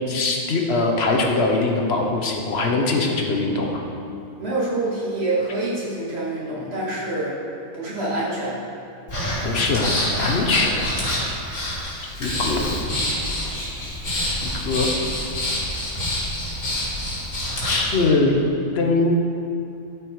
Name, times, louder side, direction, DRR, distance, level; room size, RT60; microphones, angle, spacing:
voice 1, 0.0-3.8 9.4-10.9 12.0-12.7 14.2-14.9 17.7-18.4 18.7-19.2, left 3 dB, 50° left, 1 dB, 1.2 m, -22 dB
voice 2, 4.4-7.4 7.7-8.6, right 2 dB, 50° right, -7 dB, 2.4 m, -26 dB
Breathing, 9.1-17.9, left 1 dB, 70° left, 2.6 m, -26 dB
13.0 x 5.0 x 4.7 m, 2.6 s
omnidirectional pair, 1.4 m